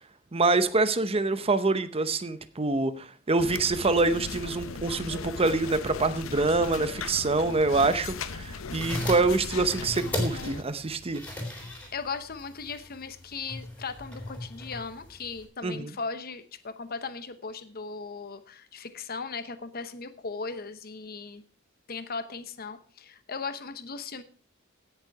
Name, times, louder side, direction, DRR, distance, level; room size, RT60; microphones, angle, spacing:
voice 1, 0.3-11.2 15.6-15.9, right 3 dB, 30° right, 12 dB, 0.8 m, -26 dB
sound 1, 3.4-10.6, left 4 dB, 75° left, 0.8 m, -38 dB
sound 2, 8.6-15.4, left 1 dB, 5° left, 3.6 m, -37 dB
voice 2, 8.8-9.2 11.9-21.4 21.9-24.2, left 4 dB, 50° left, 11 dB, 1.0 m, -37 dB
17.0 x 6.6 x 4.7 m, 0.43 s
head